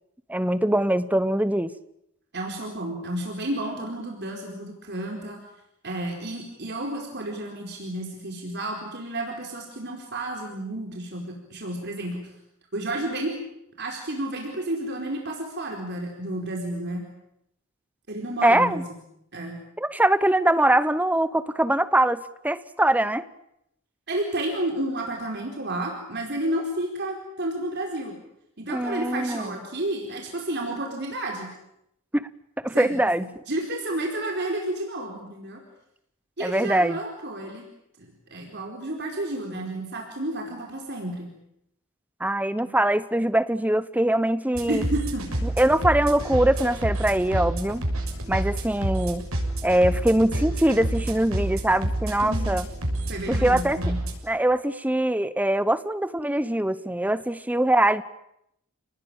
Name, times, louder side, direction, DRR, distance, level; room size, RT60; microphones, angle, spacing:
voice 1, 0.3-1.7 18.4-18.8 19.8-23.2 28.7-29.5 32.1-32.3 32.6-33.2 36.4-37.0 42.2-44.8 45.4-47.8 48.3-49.3 49.6-52.7 53.3-53.8 54.2-58.0, right 1 dB, 10° right, 14 dB, 0.9 m, -22 dB
voice 2, 2.3-5.4 5.8-12.3 12.7-13.4 13.8-17.0 18.1-19.0 19.3-19.6 24.1-28.1 28.6-31.5 32.7-33.1 33.5-35.6 36.4-37.7 38.0-41.3 44.7-45.4 52.2-52.6 53.1-54.0, right 1 dB, 55° right, 0 dB, 4.6 m, -31 dB
sound 1, 44.5-54.2, right 1 dB, 90° right, 6.8 m, -29 dB
30.0 x 19.5 x 9.0 m, 0.79 s
head